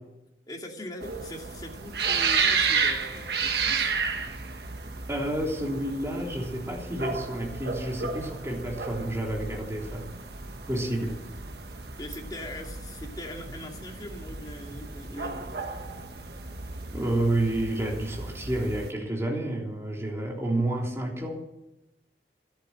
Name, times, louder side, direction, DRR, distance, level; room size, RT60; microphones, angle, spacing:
voice 1, 0.5-3.9 12.0-15.6, left 1 dB, 25° left, 1 dB, 2.5 m, -41 dB
sound 1, 1.0-18.9, right 5 dB, 70° right, 1.7 m, -32 dB
voice 2, 5.1-10.0 10.7-11.2 14.7-14.8 15.9-16.0 16.9-21.4, right 1 dB, 15° right, -1 dB, 3.4 m, -30 dB
12.5 x 11.5 x 7.8 m, 0.94 s
head